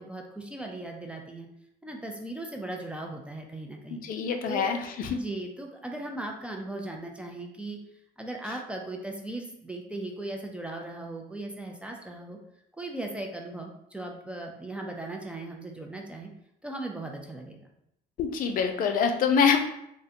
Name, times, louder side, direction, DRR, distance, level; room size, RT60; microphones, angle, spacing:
voice 1, 0.0-1.5 1.8-4.0 4.5-4.7 5.1-7.8 8.2-12.4 12.7-16.3 16.6-17.7, right 2 dB, 5° right, 1 dB, 0.4 m, -38 dB
voice 2, 3.9-5.2 18.2-19.7, left 6 dB, 55° left, 5 dB, 0.4 m, -25 dB
3.6 x 2.1 x 2.6 m, 0.79 s
cardioid pair, 110°, 17 cm